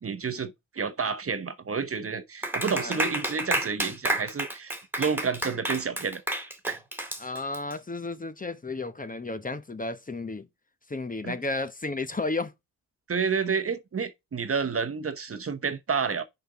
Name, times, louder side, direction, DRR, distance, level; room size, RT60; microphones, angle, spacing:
voice 1, 0.0-6.2 6.7-6.8 11.2-11.4 13.1-16.2, right 5 dB, 40° right, 1.0 m, -30 dB
Clapping, 2.4-7.7, right 1 dB, 5° right, 2.0 m, -30 dB
voice 2, 7.2-10.5 10.9-12.5, left 3 dB, 20° left, 0.9 m, -33 dB
6.6 x 4.4 x 4.9 m
supercardioid pair, 50°, 37 cm